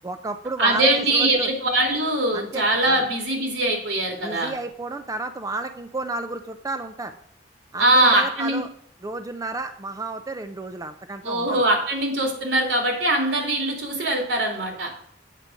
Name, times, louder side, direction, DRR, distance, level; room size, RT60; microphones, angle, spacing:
voice 1, 0.0-1.5 2.3-3.1 4.2-7.2 7.7-8.7 9.0-11.6, right 2 dB, 20° right, 8 dB, 0.4 m, -32 dB
voice 2, 0.6-4.5 7.8-8.6 11.2-14.9, right 1 dB, 85° right, 2 dB, 2.6 m, -22 dB
8.3 x 5.0 x 7.4 m, 0.65 s
head